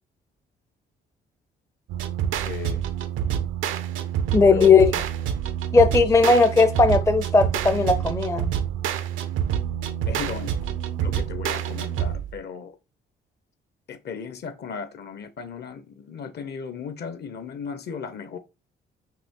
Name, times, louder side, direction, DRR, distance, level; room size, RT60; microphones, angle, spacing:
sound 1, 1.9-12.4, right 9 dB, 85° right, 0.6 m, -27 dB
voice 1, 2.4-2.8 4.5-5.0 6.2-6.4 10.1-10.5 11.0-12.8 13.9-18.4, left 6 dB, 55° left, 0.8 m, -35 dB
voice 2, 4.3-4.9 5.7-8.5, left 4 dB, 15° left, 0.4 m, -17 dB
5.7 x 2.5 x 3.7 m
cardioid pair, 90°, 20 cm